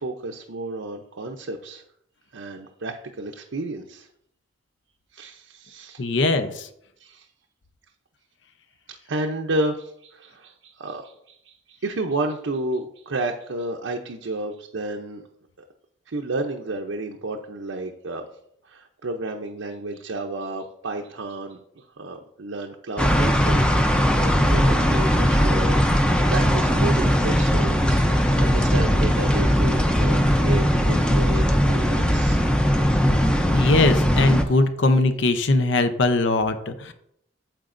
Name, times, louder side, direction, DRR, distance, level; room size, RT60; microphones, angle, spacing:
voice 1, 0.0-1.8 2.3-4.1 5.1-6.0 7.0-7.3 8.9-15.3 16.1-18.3 18.6-32.4, right 2 dB, 85° right, 2 dB, 0.7 m, -31 dB
voice 2, 6.0-6.7 33.5-36.9, left 2 dB, 70° left, 9 dB, 0.7 m, -20 dB
sound 1, 23.0-34.4, equal, 5° left, 0.5 m, -19 dB
9.0 x 7.8 x 2.6 m, 0.73 s
head